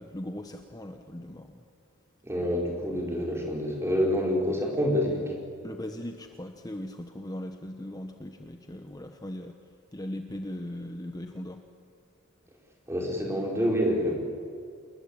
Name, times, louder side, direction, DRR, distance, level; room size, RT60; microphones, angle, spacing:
voice 1, 0.0-1.6 5.6-11.6, left 1 dB, 20° left, 5 dB, 1.0 m, -39 dB
voice 2, 2.2-5.4 12.9-14.2, equal, 10° right, 0 dB, 4.7 m, -27 dB
28.5 x 20.5 x 8.8 m, 2.3 s
head